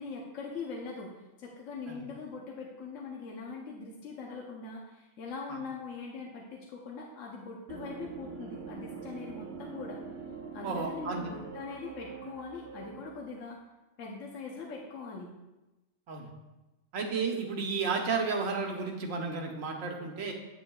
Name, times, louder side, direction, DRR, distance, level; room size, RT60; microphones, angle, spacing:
voice 1, 0.0-10.0 10.5-13.6 14.0-15.3, left 4 dB, 75° left, -2 dB, 1.2 m, -42 dB
sound 1, 7.7-13.4, right 5 dB, 60° right, 1.0 m, -44 dB
voice 2, 10.6-11.3 16.1-16.3 16.9-20.3, right 4 dB, 85° right, 2 dB, 1.4 m, -32 dB
9.1 x 7.0 x 2.3 m, 1.0 s
omnidirectional pair, 1.3 m